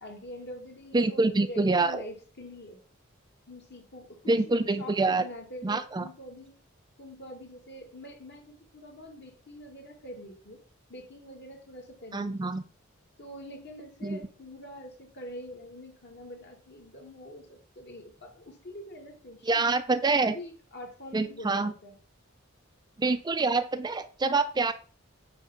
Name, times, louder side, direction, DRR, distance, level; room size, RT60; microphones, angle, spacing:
voice 1, 0.0-2.8 3.5-6.5 7.0-10.6 10.9-12.5 13.2-19.6 20.0-22.0, left 1 dB, 55° left, 2 dB, 2.1 m, -45 dB
voice 2, 0.9-2.0 4.3-5.2 5.6-6.0 12.1-12.6 14.0-14.2 19.4-20.4 21.1-21.7 23.0-24.7, right 3 dB, 20° right, 10 dB, 0.4 m, -26 dB
9.2 x 3.4 x 5.7 m, 0.39 s
head